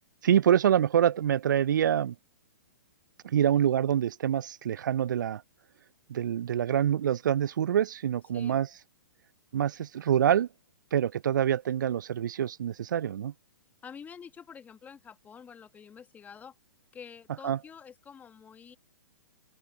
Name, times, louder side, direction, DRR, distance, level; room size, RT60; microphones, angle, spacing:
voice 1, 0.2-2.1 3.2-5.4 6.1-8.7 9.5-10.5 10.9-13.3 17.4-17.6, right 10 dB, 65° right, 0.4 m, -26 dB
voice 2, 13.8-16.5 16.9-18.8, left 7 dB, 15° left, 1.3 m, -48 dB
open air
figure-of-eight pair, 120°, 11 cm